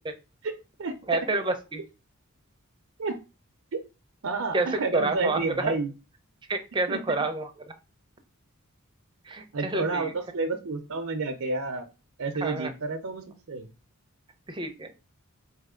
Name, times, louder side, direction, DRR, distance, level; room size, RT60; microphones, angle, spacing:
voice 1, 0.4-1.0 3.0-3.2 3.7-3.8 4.2-5.9 6.9-7.0 9.5-11.9 12.2-13.7, right 3 dB, 70° right, 6 dB, 0.6 m, -30 dB
voice 2, 1.1-1.8 4.5-5.8 6.5-7.5 9.2-10.1 12.4-12.7 14.5-14.9, right 3 dB, 20° right, 7 dB, 0.6 m, -28 dB
4.2 x 3.2 x 3.7 m, 0.29 s
head